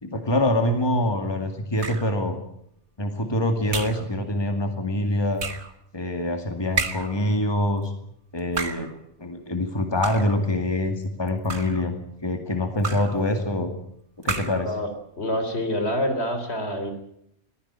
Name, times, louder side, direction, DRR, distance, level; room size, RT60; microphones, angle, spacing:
voice 1, 0.0-2.4 3.0-5.4 5.9-7.9 8.3-8.9 9.2-12.0 12.2-13.7 14.2-14.8, left 1 dB, 20° left, 6 dB, 2.3 m, -25 dB
sound 1, 1.8-2.2 3.7-4.1 5.4-5.7 6.8-7.2 8.4-8.9 10.0-10.4 11.3-11.9 12.8-13.2 14.2-14.7, right 4 dB, 65° right, 2.0 m, -31 dB
voice 2, 15.2-16.9, equal, 60° left, 7 dB, 4.0 m, -26 dB
21.5 x 15.5 x 8.9 m, 0.73 s
omnidirectional pair, 1.2 m